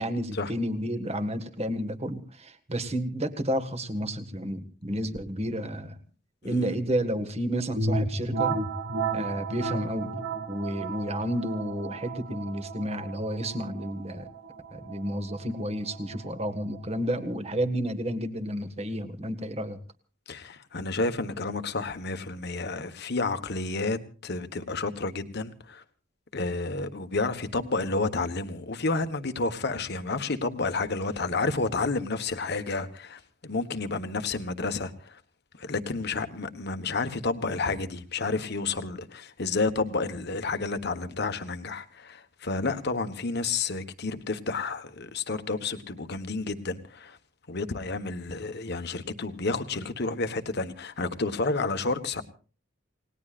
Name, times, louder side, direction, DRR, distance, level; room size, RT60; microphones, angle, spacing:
voice 1, 0.0-6.0 6.4-8.6 9.1-14.3 14.7-19.8, equal, 35° right, 1.8 m, -31 dB
sound 1, 7.8-17.3, right 3 dB, 85° right, 2.5 m, -33 dB
voice 2, 20.3-25.8 26.3-34.9 35.6-47.2 47.5-52.2, left 3 dB, 60° left, 1.4 m, -30 dB
29.0 x 19.0 x 2.5 m
head